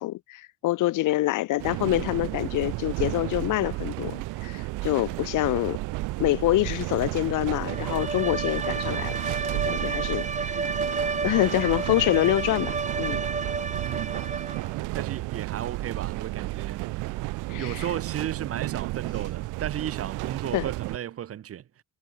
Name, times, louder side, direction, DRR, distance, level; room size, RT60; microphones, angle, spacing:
voice 1, 0.0-5.8 6.2-9.1 9.6-10.7 11.2-13.2 17.5-17.8 20.5-20.7, left 16 dB, 85° left, 1.4 m, -26 dB
sound 1, 1.6-21.0, right 21 dB, 85° right, 0.5 m, -32 dB
Bowed string instrument, 7.7-14.8, right 4 dB, 25° right, 1.7 m, -31 dB
voice 2, 13.8-14.2 14.9-16.8 17.6-21.6, right 10 dB, 50° right, 0.8 m, -34 dB
cardioid pair, 90°, 30 cm